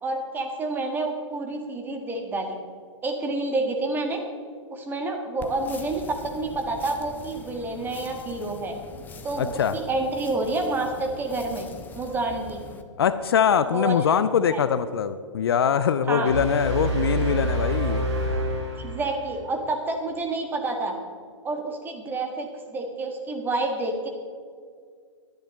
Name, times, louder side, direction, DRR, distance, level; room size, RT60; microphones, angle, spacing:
voice 1, 0.0-2.6 3.0-4.2 4.7-8.7 9.2-11.7 11.9-12.6 13.7-14.0 14.5-14.6 16.1-16.3 18.8-20.9 21.4-24.1, right 2 dB, 10° right, 3 dB, 1.6 m, -28 dB
sound 1, 5.4-12.8, left 5 dB, 10° left, 0.7 m, -43 dB
voice 2, 9.4-9.8 13.0-18.1, left 7 dB, 50° left, 13 dB, 0.5 m, -23 dB
sound 2, 16.3-19.5, right 1 dB, 60° right, 3.5 m, -27 dB
23.5 x 10.5 x 3.1 m, 2.1 s
figure-of-eight pair, 115°, 16 cm